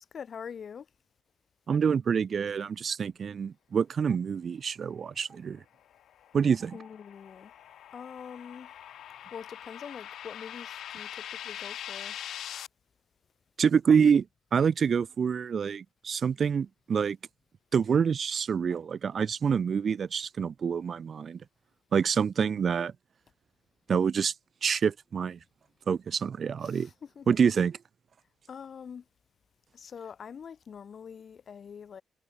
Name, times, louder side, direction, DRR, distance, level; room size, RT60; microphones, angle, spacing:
voice 1, 0.1-0.9 6.7-7.5 7.9-8.7 9.3-12.2 22.4-22.7 26.6-27.5 28.5-29.0 29.7-32.0, left 7 dB, 50° left, 5.6 m, -44 dB
Stream, 1.7-1.8 2.9-3.0 4.1-4.2 5.3-5.4 6.5-6.9, right 4 dB, 30° right, 7.3 m, -53 dB
voice 2, 1.7-5.6 6.3-6.8 13.6-14.3 14.5-17.2 17.7-21.4 21.9-22.9 23.9-24.3 24.6-25.4 25.9-26.9 27.3-27.7, right 6 dB, 50° right, 0.5 m, -26 dB
sound 1, 5.8-12.7, left 11 dB, 70° left, 4.2 m, -43 dB
cardioid pair, 90°, 0 cm